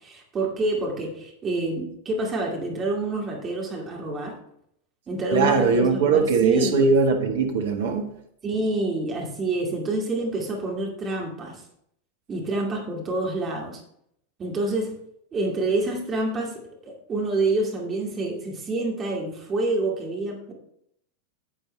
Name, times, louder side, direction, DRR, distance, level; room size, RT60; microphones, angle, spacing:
voice 1, 0.0-4.3 5.1-6.8 8.4-11.6 12.3-13.8 14.4-15.0 15.3-20.5, right 2 dB, 25° right, 2.3 m, -27 dB
voice 2, 5.3-8.2, right 4 dB, 60° right, 1.6 m, -20 dB
10.0 x 9.3 x 3.3 m
figure-of-eight pair, 90°, 0 cm